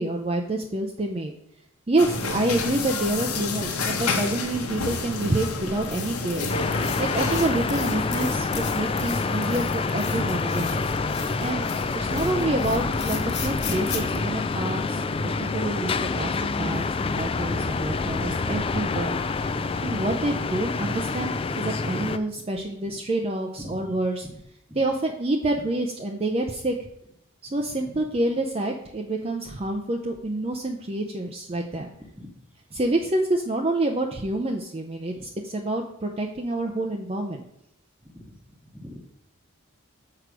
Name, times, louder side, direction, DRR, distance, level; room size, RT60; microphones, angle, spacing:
voice 1, 0.0-1.3 1.9-6.5 7.0-8.5 8.7-10.8 11.4-11.6 11.9-16.8 17.1-19.1 19.8-24.3 24.8-26.9 27.5-31.9 32.7-37.5, right 2 dB, 25° right, 2 dB, 0.5 m, -27 dB
sound 1, 2.0-7.5, left 3 dB, 80° left, 1.1 m, -29 dB
sound 2, 5.7-14.2, left 7 dB, 50° left, 1.4 m, -39 dB
sound 3, 6.5-22.2, left 4 dB, 25° left, 0.3 m, -27 dB
voice 2, 21.6-22.4 22.8-23.0 23.6-24.4 24.7-24.8 27.5-28.0 32.2-32.3 35.2-35.3 38.0-39.0, equal, 5° right, 3 dB, 1.0 m, -43 dB
6.7 x 4.7 x 6.1 m, 0.77 s
head